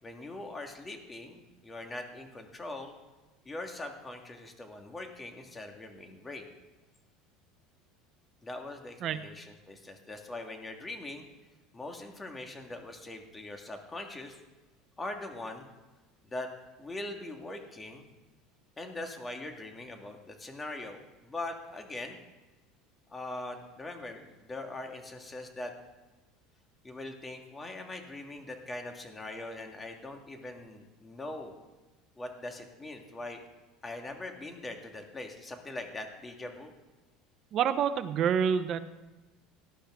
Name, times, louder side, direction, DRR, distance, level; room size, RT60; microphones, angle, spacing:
voice 1, 0.0-3.0 3.4-6.5 8.4-11.3 11.7-14.4 15.0-15.7 16.2-16.5 16.8-18.1 18.8-22.2 23.1-25.7 26.8-31.6 32.2-33.4 33.8-36.7, left 2 dB, 15° left, 4 dB, 1.9 m, -41 dB
voice 2, 37.5-38.8, right 8 dB, 45° right, 11 dB, 0.9 m, -27 dB
18.5 x 11.5 x 3.7 m, 1.1 s
supercardioid pair, 130°, 0 cm